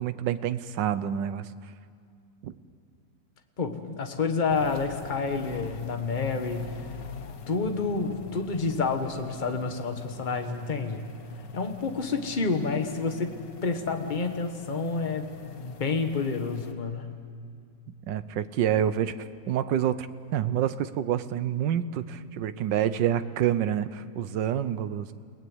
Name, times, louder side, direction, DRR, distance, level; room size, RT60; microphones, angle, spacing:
voice 1, 0.0-1.5 2.4-2.5 18.1-20.1 20.3-25.1, right 10 dB, 85° right, 13 dB, 1.5 m, -27 dB
voice 2, 3.6-6.8 7.5-11.0 11.5-17.2, left 4 dB, 30° left, 5 dB, 1.5 m, -29 dB
sound 1, 4.5-16.7, left 7 dB, 80° left, 1.9 m, -44 dB
29.5 x 19.0 x 7.9 m, 2.3 s
omnidirectional pair, 1.9 m